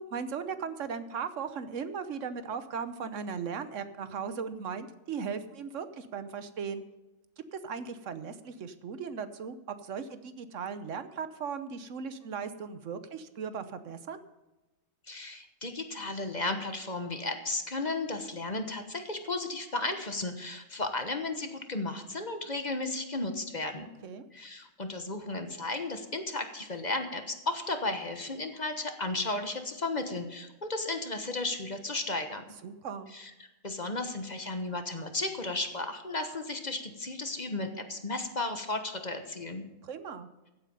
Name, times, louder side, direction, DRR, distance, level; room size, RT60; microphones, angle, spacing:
voice 1, 0.0-6.8 7.5-9.6 9.8-14.2 24.0-24.3 32.6-33.1 39.8-40.3, right 6 dB, 70° right, 12 dB, 1.2 m, -37 dB
voice 2, 15.1-23.9 24.3-32.4 33.1-33.3 33.6-39.6, left 2 dB, 35° left, 7 dB, 1.3 m, -34 dB
15.5 x 8.4 x 5.4 m, 1.1 s
omnidirectional pair, 1.4 m